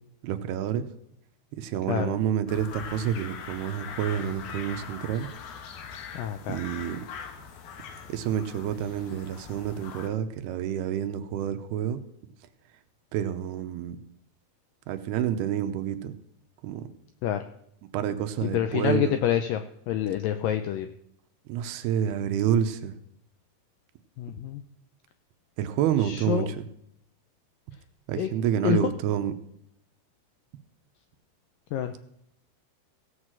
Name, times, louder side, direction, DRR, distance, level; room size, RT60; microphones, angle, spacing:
voice 1, 0.2-0.9 1.5-5.3 6.5-7.0 8.1-12.0 13.1-14.0 14.9-16.2 16.6-16.9 17.9-19.2 21.5-22.9 25.6-26.7 28.1-29.3, right 9 dB, 85° right, 9 dB, 2.8 m, -28 dB
sound 1, 2.5-10.1, left 6 dB, 70° left, 3.1 m, -42 dB
voice 2, 6.1-6.6 17.2-17.4 18.4-20.9 24.2-24.6 26.0-26.5 28.2-28.3 28.6-28.8 31.7-31.9, left 11 dB, 85° left, 8 dB, 1.9 m, -27 dB
17.0 x 6.5 x 7.5 m, 0.75 s
omnidirectional pair, 4.7 m